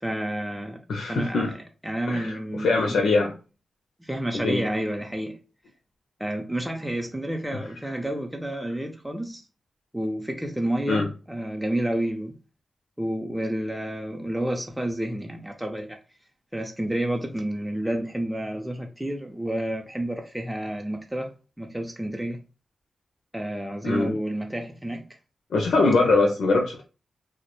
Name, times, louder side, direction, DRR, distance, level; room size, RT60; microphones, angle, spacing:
voice 1, 0.0-3.0 4.0-5.4 6.2-9.4 9.9-12.3 13.0-16.0 16.5-21.3 21.6-22.4 23.3-25.0, right 1 dB, 5° right, 0.4 m, -30 dB
voice 2, 0.9-1.5 2.1-3.3 4.3-4.6 7.5-7.6 10.9-11.1 23.8-24.1 25.5-26.8, left 3 dB, 85° left, 0.4 m, -22 dB
2.2 x 2.0 x 2.9 m
cardioid pair, 60°, 0 cm